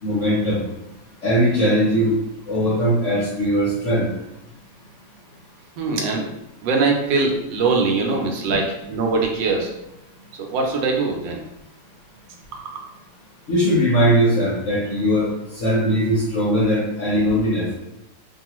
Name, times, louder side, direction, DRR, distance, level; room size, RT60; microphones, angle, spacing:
voice 1, 0.0-0.6 1.2-2.1 2.5-4.1 8.5-8.6 13.5-15.3 15.6-17.7, equal, 55° left, -6 dB, 0.9 m, -20 dB
voice 2, 5.8-6.3 6.6-9.7 10.3-11.4 12.5-12.9, right 4 dB, 80° right, 2 dB, 1.3 m, -22 dB
3.1 x 2.3 x 2.9 m, 0.92 s
omnidirectional pair, 2.0 m